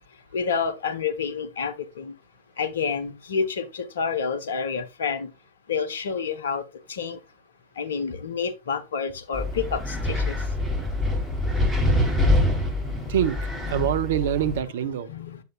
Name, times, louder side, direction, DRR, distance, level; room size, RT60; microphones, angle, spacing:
voice 1, 0.3-2.1 2.6-5.3 5.7-6.6 6.9-7.2 7.8-10.4 13.7-13.9 15.1-15.4, left 6 dB, 65° left, 1.1 m, -29 dB
Wind, 9.3-14.6, left 1 dB, 5° left, 3.5 m, -25 dB
voice 2, 13.1-15.1, right 10 dB, 60° right, 0.8 m, -25 dB
8.1 x 7.8 x 2.4 m
figure-of-eight pair, 90°, 0 cm